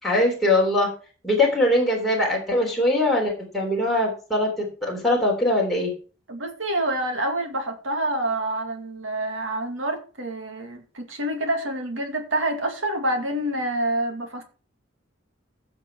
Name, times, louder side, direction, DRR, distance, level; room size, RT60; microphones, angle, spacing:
voice 1, 0.0-0.9 1.2-4.5 4.8-5.9, left 1 dB, ahead, -3 dB, 3.5 m, -21 dB
voice 2, 6.3-14.4, right 1 dB, 80° right, 4 dB, 2.3 m, -27 dB
16.0 x 5.9 x 4.7 m, 0.37 s
head